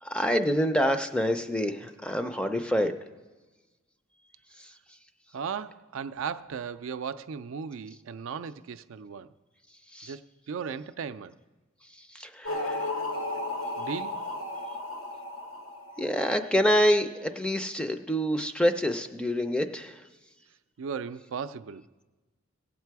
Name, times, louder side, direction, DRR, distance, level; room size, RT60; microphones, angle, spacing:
voice 1, 0.0-3.0 4.6-5.0 9.9-10.2 11.8-12.9 16.0-20.1, equal, 5° left, 0.4 m, -27 dB
voice 2, 5.3-9.3 10.0-10.2 10.5-11.4 13.8-14.2 20.8-21.8, right 6 dB, 75° right, 0.4 m, -36 dB
sound 1, 12.4-16.7, left 1 dB, 75° left, 1.2 m, -34 dB
17.5 x 7.5 x 4.7 m
head